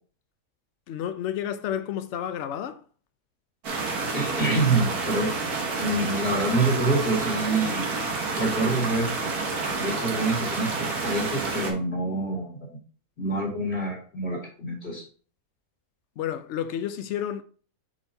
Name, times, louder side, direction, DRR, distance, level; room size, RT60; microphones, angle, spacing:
voice 1, 0.9-2.8 16.2-17.4, left 10 dB, 60° left, 0.8 m, -31 dB
sound 1, 3.6-11.7, right 3 dB, 85° right, 1.9 m, -29 dB
voice 2, 4.1-5.3 5.8-7.9 8.3-9.1 9.8-12.8 13.2-15.0, right 2 dB, 45° left, 2.4 m, -26 dB
8.7 x 4.5 x 2.7 m
omnidirectional pair, 1.6 m